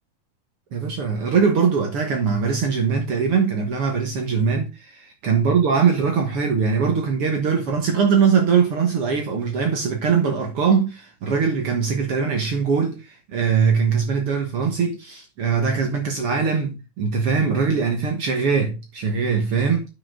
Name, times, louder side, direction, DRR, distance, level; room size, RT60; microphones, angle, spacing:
voice 1, 0.7-19.9, right 6 dB, 60° right, 1.5 m, -21 dB
9.4 x 5.8 x 3.8 m
omnidirectional pair, 4.3 m